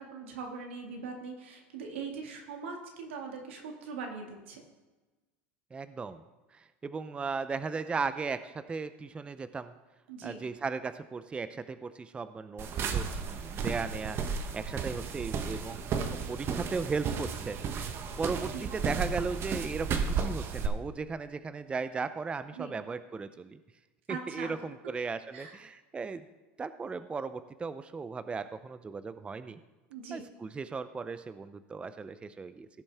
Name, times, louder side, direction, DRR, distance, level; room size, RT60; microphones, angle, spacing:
voice 1, 0.0-4.6 10.1-10.4 18.5-18.7 22.5-22.7 24.1-24.5 25.3-25.5 29.9-30.2, right 5 dB, 90° right, 2 dB, 1.9 m, -41 dB
voice 2, 5.7-6.2 6.5-9.7 10.2-15.8 16.3-17.6 18.2-23.6 24.1-26.2 26.6-29.6 30.1-32.7, right 4 dB, 15° right, 12 dB, 0.5 m, -36 dB
sound 1, 12.6-20.7, right 6 dB, 40° right, 1.0 m, -33 dB
16.5 x 7.1 x 3.5 m, 1.2 s
supercardioid pair, 105°, 6 cm